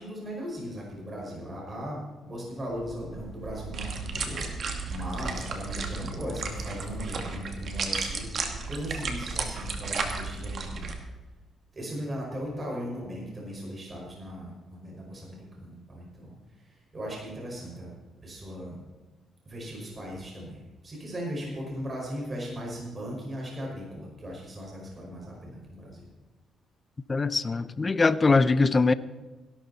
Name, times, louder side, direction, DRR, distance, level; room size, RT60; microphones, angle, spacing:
voice 1, 0.0-10.9 11.7-17.9 18.2-18.8 19.4-26.1, equal, 30° right, -2 dB, 5.1 m, -38 dB
sound 1, 2.8-10.9, right 4 dB, 55° right, 2.2 m, -34 dB
voice 2, 27.1-28.9, left 3 dB, 30° left, 15 dB, 0.6 m, -22 dB
17.0 x 12.0 x 4.1 m, 1.2 s
cardioid pair, 90°, 0 cm